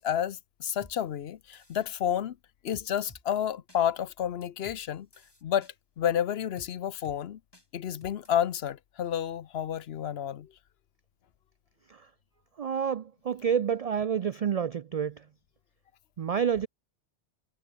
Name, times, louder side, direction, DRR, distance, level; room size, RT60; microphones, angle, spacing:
voice 1, 0.0-2.4 2.6-5.1 5.4-7.4 7.7-10.5, left 9 dB, 65° left, 0.9 m, -30 dB
sound 1, 0.8-0.9 1.5-1.9 2.7-3.2 3.7-3.8 4.4-4.8 5.1-5.7 6.6-6.7 7.0-7.2 7.5-7.7 8.0-8.3, left 1 dB, 20° left, 3.4 m, -53 dB
voice 2, 12.6-15.3 16.2-16.7, right 7 dB, 75° right, 0.3 m, -29 dB
omnidirectional pair, 1.2 m